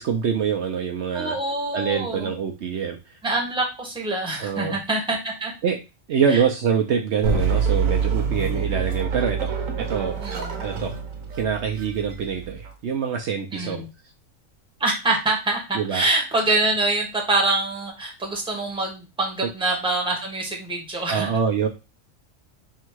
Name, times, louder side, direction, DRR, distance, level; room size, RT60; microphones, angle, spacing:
voice 1, 0.0-1.3 1.7-3.0 4.4-4.7 5.6-5.8 6.1-10.2 10.6-10.9 11.4-13.9 15.7-16.0 21.1-21.7, right 7 dB, 65° right, 2 dB, 0.9 m, -25 dB
voice 2, 1.1-2.3 3.2-5.5 6.3-6.4 10.2-10.6 13.5-13.9 14.8-21.3, right 2 dB, 5° right, 0 dB, 1.0 m, -25 dB
sound 1, 7.2-12.7, right 5 dB, 85° right, 1.2 m, -26 dB
3.5 x 2.5 x 4.5 m, 0.27 s
omnidirectional pair, 1.3 m